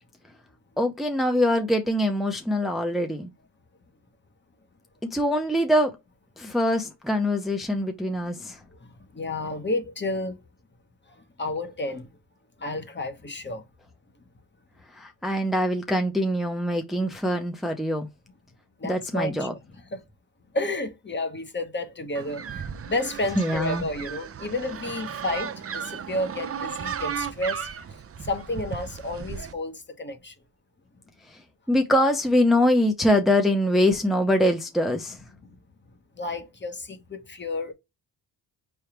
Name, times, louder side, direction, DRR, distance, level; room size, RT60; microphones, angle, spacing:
voice 1, 0.8-3.3 5.1-5.9 6.4-8.6 15.0-18.1 18.8-19.5 23.4-23.8 31.7-35.1, left 1 dB, ahead, 0.8 m, -23 dB
voice 2, 9.1-10.4 11.4-12.1 12.6-13.6 18.8-19.5 19.9-20.0 20.5-27.7 28.2-30.3 36.2-37.7, left 2 dB, 25° left, 1.1 m, -31 dB
sound 1, 22.2-29.5, right 7 dB, 35° right, 0.6 m, -35 dB
4.5 x 3.4 x 3.0 m
cardioid pair, 95°, 41 cm